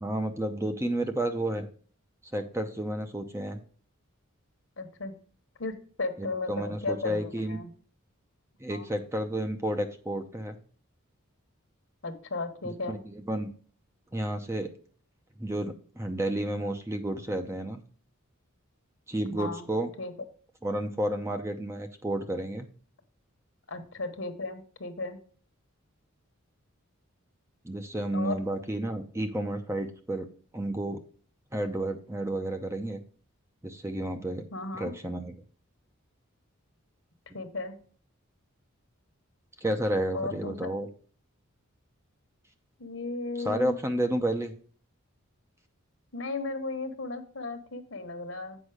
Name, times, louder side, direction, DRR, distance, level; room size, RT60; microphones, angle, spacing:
voice 1, 0.0-1.7 2.3-3.6 6.5-7.6 8.6-10.6 12.9-13.5 14.1-14.7 15.4-17.8 19.1-19.9 20.6-22.7 27.6-30.3 30.5-31.0 31.5-33.0 33.6-34.5 34.7-35.3 39.6-40.9 43.4-44.5, right 1 dB, 15° right, 6 dB, 0.6 m, -31 dB
voice 2, 4.8-5.1 5.6-7.7 8.7-8.9 12.0-13.0 19.3-19.7 20.0-20.1 23.7-25.2 28.1-28.4 34.5-34.9 37.3-37.8 40.1-40.7 42.8-43.7 46.1-48.6, left 3 dB, 60° left, 8 dB, 1.2 m, -35 dB
8.1 x 5.3 x 4.9 m, 0.43 s
head